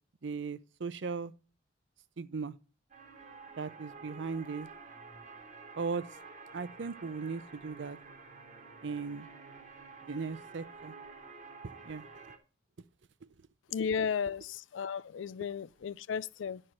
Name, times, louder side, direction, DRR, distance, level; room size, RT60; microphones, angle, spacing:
voice 1, 0.2-1.3 2.2-2.6 3.6-4.7 5.8-6.0 6.5-8.0 8.8-9.3 10.1-10.9 11.9-12.3, right 4 dB, 70° right, 0.6 m, -37 dB
sound 1, 2.9-12.4, right 4 dB, 40° right, 1.2 m, -50 dB
voice 2, 13.7-16.6, left 6 dB, 80° left, 0.4 m, -34 dB
10.5 x 4.4 x 6.4 m
head